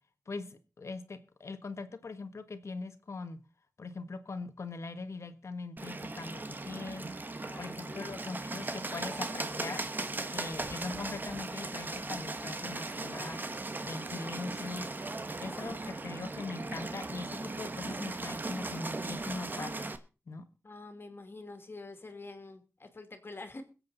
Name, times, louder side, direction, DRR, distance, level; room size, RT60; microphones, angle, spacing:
voice 1, 0.3-3.4 3.8-7.3 7.5-9.8 10.3-13.4 13.8-14.9 15.4-19.8 20.3-20.4, left 3 dB, 65° left, 9 dB, 1.5 m, -41 dB
Bird, 5.8-20.0, right 2 dB, 40° right, 1.2 m, -38 dB
voice 2, 7.4-8.3 20.6-23.6, left 3 dB, 45° left, 7 dB, 2.4 m, -47 dB
22.0 x 7.9 x 4.1 m, 0.33 s
cardioid pair, 60°, 5 cm